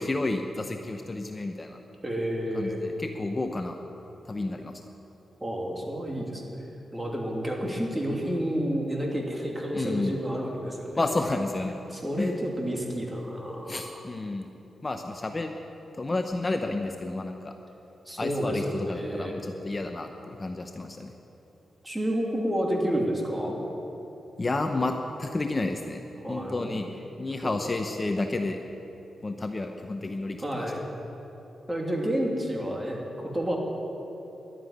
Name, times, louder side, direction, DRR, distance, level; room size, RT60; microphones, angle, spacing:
voice 1, 0.0-1.8 2.5-3.8 4.3-4.7 9.7-10.2 11.0-11.7 12.2-12.3 13.7-14.5 14.8-15.6 16.0-17.5 18.2-21.1 24.4-26.9 27.2-28.6 29.2-30.7, left 2 dB, 30° left, 5 dB, 0.8 m, -31 dB
voice 2, 2.0-2.8 5.4-6.4 6.9-11.0 11.9-14.0 18.1-19.4 21.8-23.5 26.2-26.8 27.4-27.6 30.4-30.8 31.7-33.6, equal, 15° right, -1 dB, 2.9 m, -30 dB
12.0 x 9.2 x 9.3 m, 3.0 s
cardioid pair, 65°, 0 cm